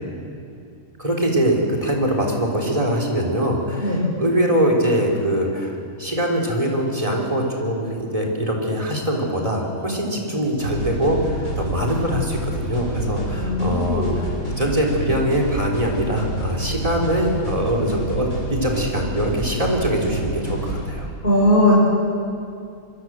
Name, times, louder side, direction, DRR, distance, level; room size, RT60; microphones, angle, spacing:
voice 1, 1.0-14.3 14.6-21.1, right 1 dB, 25° right, -1 dB, 4.3 m, -22 dB
sound 1, 10.6-20.9, right 1 dB, 70° left, 7.5 m, -29 dB
voice 2, 13.3-14.2 21.2-21.8, left 1 dB, 40° left, -6 dB, 5.5 m, -18 dB
25.0 x 23.5 x 7.8 m, 2.4 s
omnidirectional pair, 1.5 m